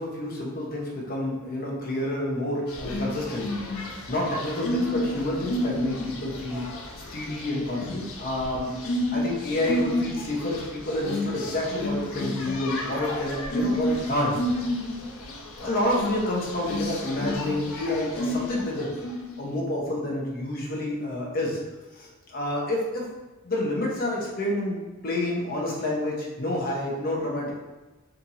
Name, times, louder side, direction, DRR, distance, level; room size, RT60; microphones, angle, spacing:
voice 1, 0.0-3.5 4.1-6.7 7.1-8.7 9.1-14.4 15.6-18.9 19.4-21.6 21.9-23.1 23.4-27.5, left 1 dB, 45° left, -3 dB, 0.8 m, -29 dB
sound 1, 2.7-19.4, left 1 dB, 90° left, 0.5 m, -31 dB
2.8 x 2.6 x 3.9 m, 1.1 s
head